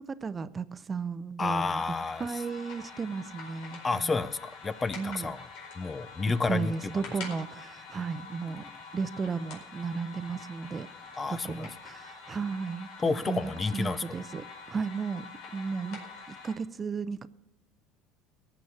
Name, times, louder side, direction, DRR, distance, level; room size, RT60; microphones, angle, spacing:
voice 1, 0.0-1.8 2.2-4.2 4.9-5.3 6.5-8.6 8.9-10.9 11.3-15.3 15.5-16.0 16.3-17.3, right 5 dB, 25° right, 0.6 m, -34 dB
voice 2, 1.4-2.3 3.8-5.4 5.8-6.7 11.2-11.7 13.0-14.0, left 4 dB, 20° left, 0.5 m, -30 dB
sound 1, 1.6-16.5, left 4 dB, 70° left, 4.6 m, -46 dB
17.5 x 6.8 x 7.1 m
supercardioid pair, 110°, 0 cm